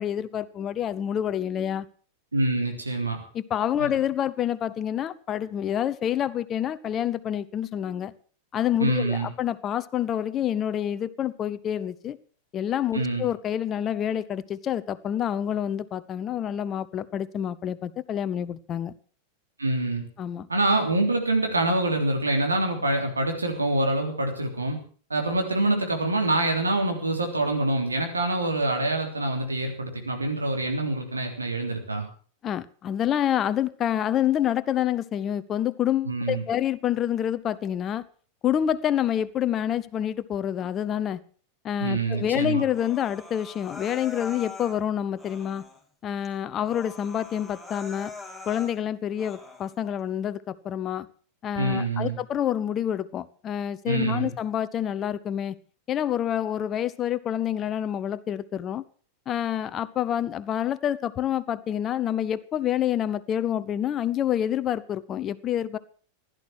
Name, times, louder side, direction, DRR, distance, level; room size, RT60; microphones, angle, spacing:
voice 1, 0.0-1.9 3.3-8.1 8.5-12.2 12.5-18.9 20.2-20.5 32.4-38.0 38.4-41.2 41.6-45.6 46.0-48.1 48.5-51.1 51.4-55.6 55.9-58.8 59.3-65.8, left 10 dB, 30° left, 15 dB, 0.9 m, -27 dB
voice 2, 2.3-3.2 3.8-3.9 8.8-9.3 12.9-13.2 19.6-20.1 20.5-24.8 25.1-32.1 36.0-36.4 41.8-42.6 51.6-52.2 53.9-54.3, right 2 dB, 80° right, 3 dB, 3.4 m, -25 dB
Human voice, 42.7-44.8 45.2-45.8 46.2-46.3 46.6-48.7 49.1-49.7, left 3 dB, ahead, 3.1 m, -43 dB
16.0 x 11.5 x 6.4 m, 0.43 s
figure-of-eight pair, 90°, 0 cm